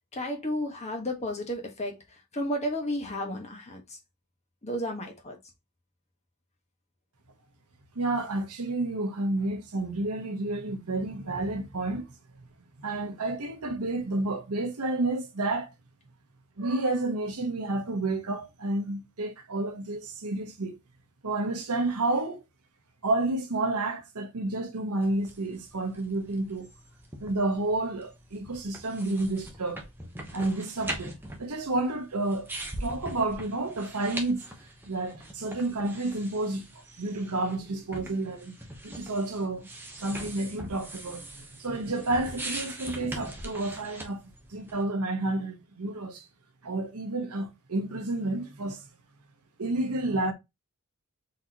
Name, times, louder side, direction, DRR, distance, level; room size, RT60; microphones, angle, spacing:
voice 1, 0.1-2.0 2.3-4.0 4.6-5.4, equal, 30° left, 1.2 m, -32 dB
voice 2, 7.9-12.1 12.8-15.7 16.6-20.8 21.2-22.4 23.0-26.7 27.2-29.9 30.3-32.5 32.8-34.5 34.8-36.7 37.0-38.6 38.8-39.7 40.0-44.2 44.5-46.3 46.6-48.8 49.6-50.3, right 2 dB, 90° right, 1.0 m, -30 dB
sound 1, 25.0-44.8, right 1 dB, 10° right, 0.9 m, -42 dB
4.2 x 3.9 x 2.8 m
head